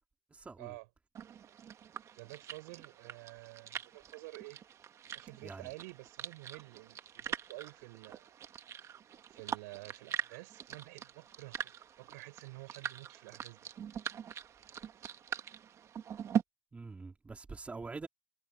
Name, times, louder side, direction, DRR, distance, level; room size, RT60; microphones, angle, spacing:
voice 1, 0.3-0.7 5.4-5.7 16.7-18.1, right 4 dB, 15° right, 3.1 m, -45 dB
sound 1, 1.1-16.4, right 9 dB, 35° right, 1.4 m, -42 dB
voice 2, 2.2-4.6 5.1-8.3 9.3-11.7 12.0-13.7, right 25 dB, 80° right, 6.9 m, -50 dB
supercardioid pair, 115°, 8 cm